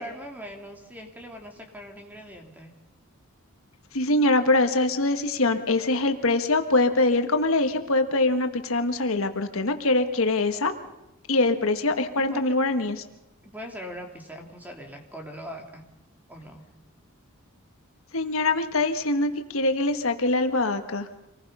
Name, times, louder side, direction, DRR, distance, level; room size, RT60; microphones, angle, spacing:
voice 1, 0.0-2.8 12.2-12.5 13.4-15.8 16.3-16.7, equal, 10° right, 2 dB, 2.9 m, -41 dB
voice 2, 3.9-10.7 11.3-13.0 18.1-21.1, left 2 dB, 70° left, 7 dB, 1.4 m, -23 dB
26.5 x 19.5 x 5.5 m, 0.97 s
head